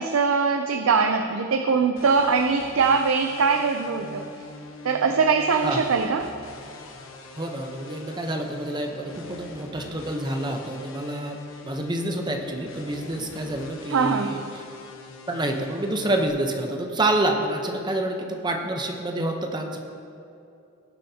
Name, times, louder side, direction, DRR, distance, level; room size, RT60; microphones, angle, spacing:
voice 1, 0.0-4.3 4.8-6.3 13.9-14.4, right 5 dB, 80° right, 6 dB, 0.5 m, -22 dB
sound 1, 2.0-16.3, left 3 dB, 70° left, 1.1 m, -43 dB
voice 2, 7.4-11.4 11.6-14.6 15.3-19.8, right 1 dB, 20° right, 3 dB, 0.8 m, -28 dB
18.0 x 7.6 x 2.8 m, 2.7 s
head